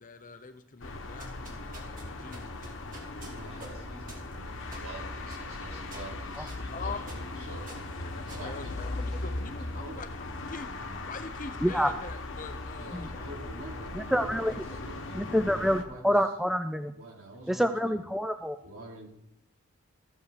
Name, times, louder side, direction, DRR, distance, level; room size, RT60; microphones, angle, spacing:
voice 1, 0.0-2.7 6.7-7.0 8.0-10.7 11.1-13.4, left 4 dB, 35° left, 9 dB, 0.7 m, -43 dB
sound 1, 0.8-15.8, left 2 dB, 55° left, 1.2 m, -39 dB
sound 2, 1.1-9.4, right 2 dB, 40° right, 2.5 m, -51 dB
voice 2, 3.3-10.0 12.8-16.3 16.9-18.0 18.6-19.1, right 1 dB, 70° right, -3 dB, 3.7 m, -47 dB
voice 3, 13.9-14.5 15.2-16.9 17.5-18.6, equal, ahead, 8 dB, 0.3 m, -27 dB
14.5 x 5.4 x 6.7 m, 0.79 s
head